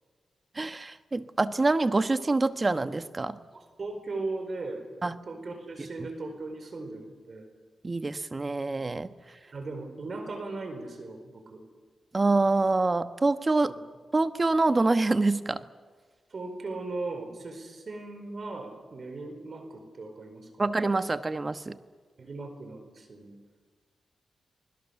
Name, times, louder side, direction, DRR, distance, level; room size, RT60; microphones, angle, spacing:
voice 1, 0.5-3.4 5.0-5.2 7.8-9.1 12.1-13.7 14.1-15.6 20.6-21.8, right 3 dB, 35° right, 11 dB, 1.2 m, -26 dB
voice 2, 3.5-4.8 5.3-7.5 9.5-11.6 13.7-13.8 16.3-20.7 22.2-23.4, right 3 dB, 55° right, 7 dB, 4.5 m, -38 dB
29.5 x 20.5 x 7.1 m, 1.5 s
cardioid pair, 60°, 0 cm